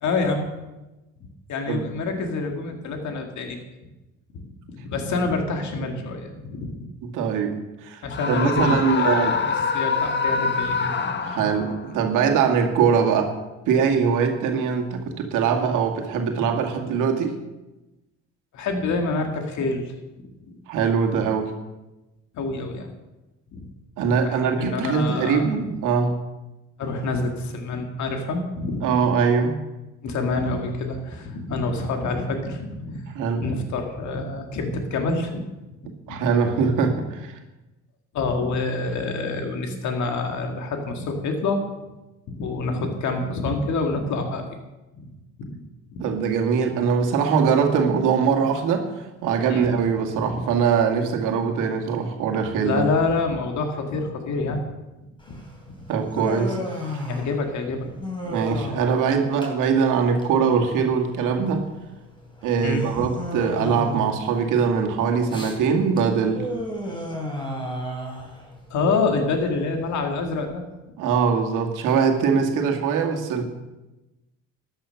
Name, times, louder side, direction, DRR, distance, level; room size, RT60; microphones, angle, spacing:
voice 1, 0.0-0.5 1.5-3.6 4.3-6.9 8.0-11.3 18.5-19.9 20.2-20.5 22.3-22.9 23.5-23.7 24.2-25.5 26.8-28.8 30.0-33.1 33.4-35.4 36.1-36.2 38.1-41.6 42.3-44.4 44.9-45.1 45.4-45.6 45.9-46.1 49.5-49.7 50.3-50.4 52.6-54.6 55.3-55.4 57.1-57.9 58.6-58.7 62.6-63.1 68.7-70.6, left 3 dB, 65° left, 4 dB, 2.1 m, -27 dB
voice 2, 7.0-7.5 7.8-8.0 8.3-9.4 11.2-13.4 13.7-17.3 20.7-21.5 24.0-26.2 28.8-29.6 33.1-33.4 36.1-37.4 46.0-48.9 49.2-52.8 55.9-57.0 58.2-61.6 62.4-66.5 71.0-73.4, right 6 dB, 80° right, 3 dB, 2.1 m, -22 dB
Screaming, 8.1-11.8, left 5 dB, 35° left, 1.1 m, -25 dB
sound 1, 30.0-31.5 31.8-32.1 32.4-33.0 33.4-34.3 34.8-34.9 35.8-35.9, right 2 dB, 30° right, 2.8 m, -42 dB
Human voice, 55.2-70.4, equal, 15° left, 3.5 m, -34 dB
13.0 x 10.5 x 5.8 m, 1.1 s
cardioid pair, 100°, 31 cm